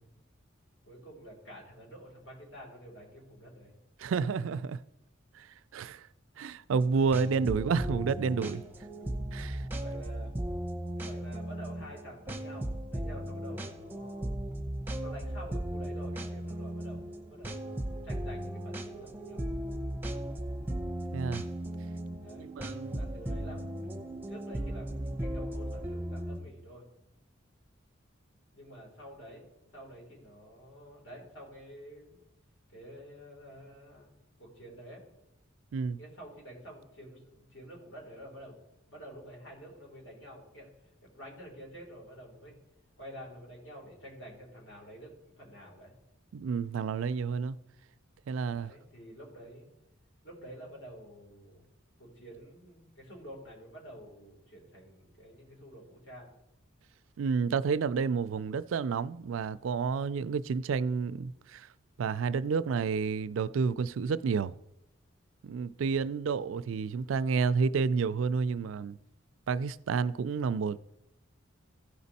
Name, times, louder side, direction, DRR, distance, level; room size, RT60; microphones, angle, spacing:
voice 1, 0.8-3.7 9.8-10.3 11.0-14.4 15.0-17.7 18.0-19.4 22.2-22.5 22.9-23.9 24.3-26.8 28.5-29.4 29.7-32.2 32.7-34.1 34.4-35.0 36.0-38.6 38.9-40.7 41.0-42.6 43.0-45.9 48.5-49.7 50.2-51.6 52.0-56.3 65.7-65.8, equal, 70° left, 3.6 m, -49 dB
voice 2, 4.0-4.8 5.4-5.5 5.7-6.0 6.4-8.6 9.3-9.6 21.1-21.4 22.4-23.0 35.7-36.0 46.3-47.6 48.3-48.7 57.2-61.7 62.0-64.5 65.4-69.0 69.5-70.8, right 5 dB, 75° right, 0.4 m, -30 dB
sound 1, 6.7-26.4, right 1 dB, 10° right, 0.7 m, -37 dB
14.5 x 5.2 x 4.1 m
head